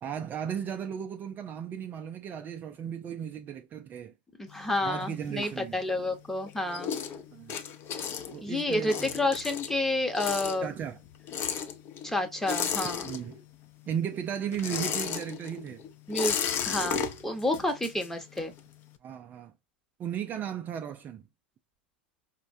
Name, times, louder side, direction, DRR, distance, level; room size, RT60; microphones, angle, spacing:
voice 1, 0.0-4.1 4.8-5.8 7.3-7.6 8.3-9.3 10.6-11.0 13.0-13.4 13.9-15.8 19.0-19.5 20.0-21.3, right 8 dB, 30° right, 0.4 m, -35 dB
voice 2, 4.4-6.9 8.4-10.7 12.0-13.1 16.1-16.4 16.6-18.5, left 2 dB, 5° left, 0.8 m, -30 dB
sound 1, 4.5-6.1 6.4-13.6 13.9-18.6, left 7 dB, 40° left, 0.6 m, -34 dB
4.4 x 2.1 x 2.6 m
hypercardioid pair, 100°, 6 cm